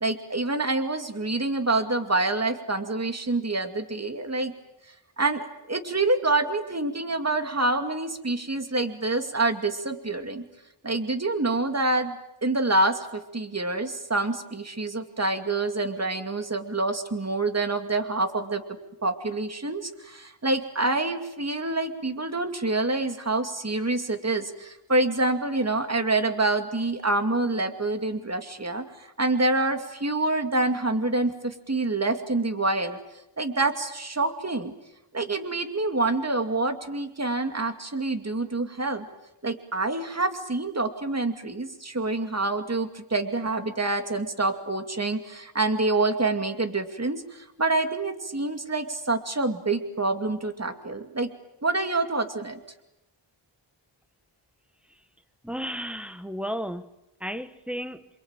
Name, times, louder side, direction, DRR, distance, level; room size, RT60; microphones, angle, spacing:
voice 1, 0.0-4.5 5.2-10.4 10.8-18.6 19.0-33.0 33.4-34.7 35.1-39.1 39.4-51.3 51.6-52.6, right 2 dB, 30° right, 2.4 m, -27 dB
voice 2, 55.4-56.9 57.2-58.1, equal, ahead, 1.3 m, -33 dB
28.0 x 23.0 x 9.0 m
wide cardioid pair, 90°, 50 cm